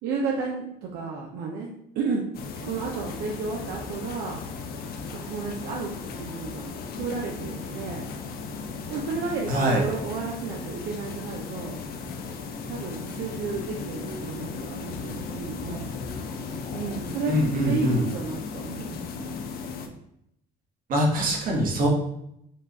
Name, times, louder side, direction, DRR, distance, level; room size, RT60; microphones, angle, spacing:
voice 1, 0.0-2.2 2.6-4.4 5.1-5.9 6.2-8.0 8.9-11.8 12.7-15.9 16.7-17.4 17.6-19.5, right 4 dB, 80° right, -1 dB, 0.6 m, -32 dB
sound 1, 2.3-19.9, left 4 dB, 65° left, 0.6 m, -36 dB
voice 2, 9.5-9.8 17.3-18.0 20.9-21.9, equal, 55° right, 0 dB, 1.3 m, -23 dB
4.5 x 2.4 x 4.0 m, 0.77 s
cardioid pair, 110°, 17 cm